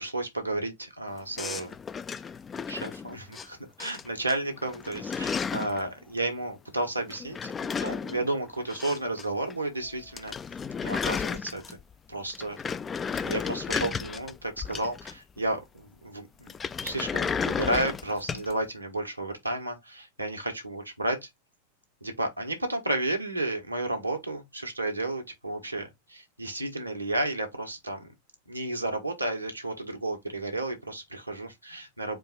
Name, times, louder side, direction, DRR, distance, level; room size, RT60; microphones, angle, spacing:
voice 1, 0.0-1.7 2.7-10.3 10.8-11.8 12.1-12.6 13.2-16.5 16.8-21.3 22.0-28.1 28.5-32.2, right 2 dB, 85° right, 1.3 m, -32 dB
sound 1, 1.4-3.5 3.8-4.3 4.6-5.8 7.1-9.2 9.5-9.6 9.9-10.0 10.2-11.9 12.3-15.4 16.5-18.5, left 6 dB, 20° left, 0.3 m, -33 dB
4.5 x 2.6 x 4.3 m
figure-of-eight pair, 90°, 0 cm